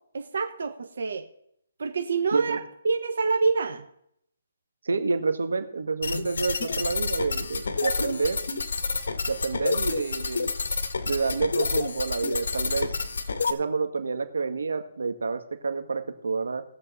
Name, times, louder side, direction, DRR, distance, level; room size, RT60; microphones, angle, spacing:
voice 1, 0.1-1.2 1.8-2.6 2.8-3.8, right 4 dB, 70° right, 4 dB, 1.3 m, -26 dB
voice 2, 4.8-8.4 9.3-10.5 11.0-12.9 13.5-16.6, right 4 dB, 85° right, 7 dB, 1.6 m, -28 dB
sound 1, 6.0-13.5, left 4 dB, 70° left, 1.5 m, -29 dB
19.0 x 7.5 x 4.2 m, 0.73 s
hypercardioid pair, 165°, 0 cm